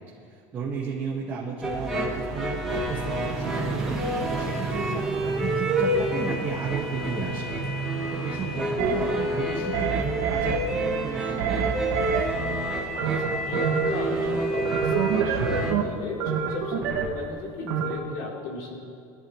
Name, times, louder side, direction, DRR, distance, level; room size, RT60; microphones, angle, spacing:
voice 1, 0.3-4.0 4.3-7.5 8.0-11.8, right 5 dB, 20° right, -7 dB, 1.9 m, -34 dB
sound 1, 1.6-15.7, right 1 dB, ahead, 2.4 m, -28 dB
sound 2, 8.8-8.9 9.7-10.6 11.4-12.2 13.0-13.9 14.6-15.8 16.2-17.1 17.7-17.9, right 8 dB, 70° right, 2.1 m, -26 dB
voice 2, 12.9-18.7, left 3 dB, 55° left, -3 dB, 3.9 m, -35 dB
24.5 x 13.5 x 3.3 m, 2.3 s
cardioid pair, 175°, 9 cm